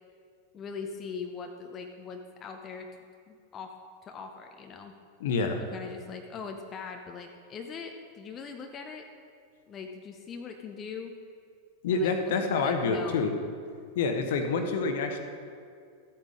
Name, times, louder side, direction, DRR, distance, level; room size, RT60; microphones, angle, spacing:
voice 1, 0.5-2.9 3.3-3.7 4.0-4.9 5.6-9.1 9.7-11.1 11.9-13.3, left 5 dB, 25° left, 4 dB, 0.8 m, -41 dB
voice 2, 5.2-5.6 11.8-13.3 13.9-15.2, left 4 dB, 55° left, 6 dB, 1.1 m, -27 dB
14.5 x 8.8 x 3.8 m, 2.3 s
figure-of-eight pair, 90°, 0 cm